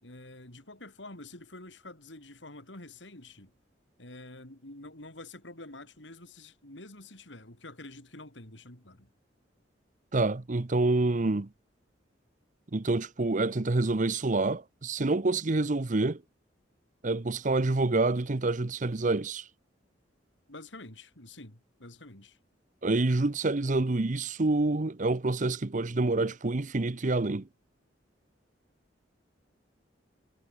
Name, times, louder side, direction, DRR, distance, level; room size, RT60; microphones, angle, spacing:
voice 1, 0.0-3.5 4.0-9.1 20.5-22.4, left 2 dB, 90° left, 5.8 m, -47 dB
voice 2, 10.1-11.5 12.7-16.2 17.0-19.4 22.8-27.5, right 2 dB, 45° right, 0.8 m, -27 dB
head